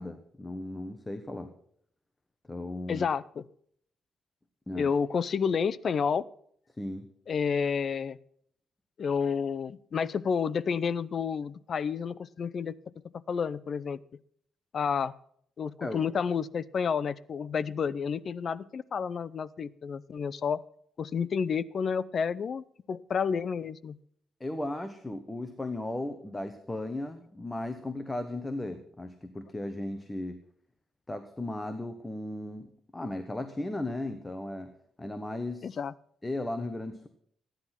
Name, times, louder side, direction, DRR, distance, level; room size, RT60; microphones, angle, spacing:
voice 1, 0.0-1.5 2.5-3.0 4.7-4.9 6.8-7.1 15.8-16.0 24.4-30.4 31.1-34.7 35.0-35.7 36.2-37.1, left 1 dB, 15° left, 8 dB, 1.1 m, -36 dB
voice 2, 2.9-3.4 4.8-6.3 7.3-8.2 9.0-12.8 13.1-14.0 14.7-15.1 15.6-20.6 21.0-24.0 35.6-35.9, left 6 dB, 45° left, 17 dB, 0.6 m, -30 dB
15.0 x 10.5 x 5.9 m, 0.66 s
cardioid pair, 120°, 0 cm